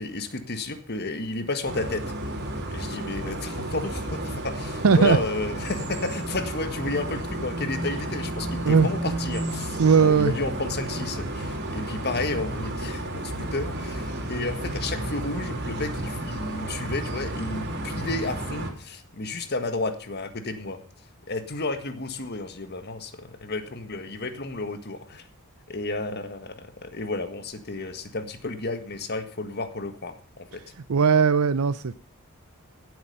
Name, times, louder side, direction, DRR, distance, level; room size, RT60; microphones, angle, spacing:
voice 1, 0.0-2.0 2.7-20.8 21.3-25.3 25.7-30.6, left 2 dB, 50° left, 8 dB, 1.7 m, -32 dB
sound 1, 1.6-18.7, right 1 dB, 50° right, 3.4 m, -32 dB
voice 2, 4.8-5.2 8.6-9.2 9.8-10.3 30.9-31.9, right 5 dB, 80° right, 13 dB, 0.6 m, -19 dB
16.5 x 8.3 x 5.5 m, 0.41 s
head